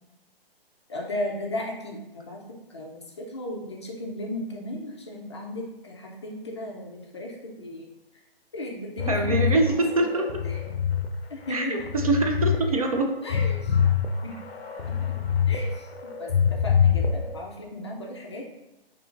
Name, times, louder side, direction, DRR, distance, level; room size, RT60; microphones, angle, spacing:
voice 1, 0.9-2.4 2.7-7.9 8.5-9.8 10.4-10.6 11.3-11.8 13.2-13.8 14.2-14.4 14.9-15.2 15.5-18.4, left 1 dB, 30° left, -1 dB, 0.4 m, -36 dB
sound 1, 9.0-11.1 11.5-12.6 13.0-15.6 15.9-17.4, left 8 dB, 90° left, 0.5 m, -25 dB
voice 2, 9.1-10.3 11.5-13.1, right 2 dB, 40° right, 3 dB, 0.4 m, -24 dB
4.6 x 3.0 x 2.5 m, 0.96 s
figure-of-eight pair, 140°, 30 cm